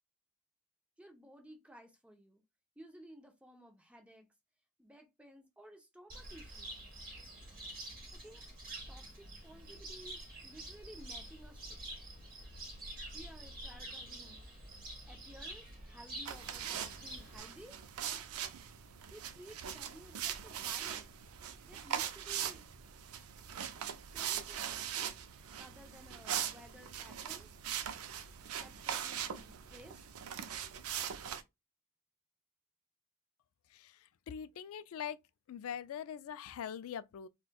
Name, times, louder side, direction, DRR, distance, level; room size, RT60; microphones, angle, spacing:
voice 1, 1.0-2.4 2.8-4.3 4.8-6.7 8.2-8.4 8.9-9.0 9.4-11.8 13.1-14.4 15.1-17.8 19.1-21.1 21.6-22.6 24.1-24.9 25.6-27.5 28.5-30.1, equal, 5° right, 0.6 m, -55 dB
Cricket, 6.1-17.4, right 1 dB, 45° right, 1.1 m, -47 dB
sound 1, 16.2-31.4, right 9 dB, 90° right, 0.4 m, -41 dB
voice 2, 33.7-35.2 35.5-37.3, left 8 dB, 75° left, 0.3 m, -43 dB
4.2 x 2.2 x 2.2 m
head